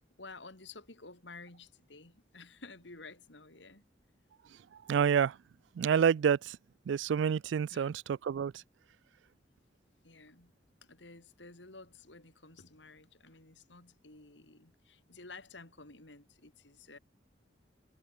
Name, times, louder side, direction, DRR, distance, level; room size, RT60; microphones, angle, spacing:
voice 1, 0.0-3.9 7.7-7.9 10.0-10.5 10.8-17.0, left 3 dB, 80° left, 4.1 m, -52 dB
voice 2, 4.9-5.4 5.8-6.6 6.9-8.5, right 7 dB, 80° right, 0.3 m, -28 dB
head